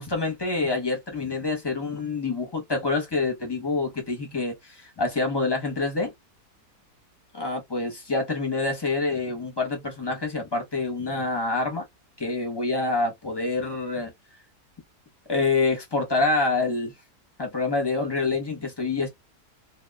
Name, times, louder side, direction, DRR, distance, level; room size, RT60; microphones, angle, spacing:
voice 1, 0.0-6.1 7.3-11.9 12.2-14.1 15.3-16.9 17.4-19.1, left 3 dB, 30° left, 0.5 m, -26 dB
2.9 x 2.2 x 2.2 m
omnidirectional pair, 1.7 m